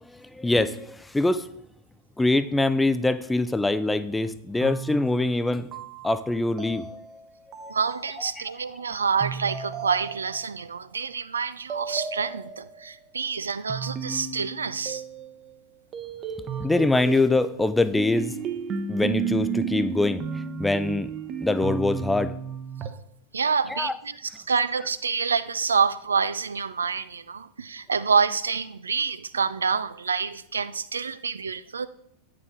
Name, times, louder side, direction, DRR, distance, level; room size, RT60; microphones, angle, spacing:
voice 1, 0.0-1.5 2.2-5.7 6.0-6.9 7.6-7.7 8.4-8.5 16.6-18.3 18.9-21.1 21.4-22.3 23.7-23.9, left 2 dB, 5° left, 0.4 m, -24 dB
sound 1, 4.6-8.5 9.2-10.7 11.7-12.9 13.7-15.6 15.9-22.9, right 6 dB, 30° right, 0.9 m, -34 dB
voice 2, 7.7-15.0 23.3-31.9, right 5 dB, 75° right, 0.4 m, -27 dB
9.2 x 6.7 x 3.7 m
figure-of-eight pair, 90°, 0 cm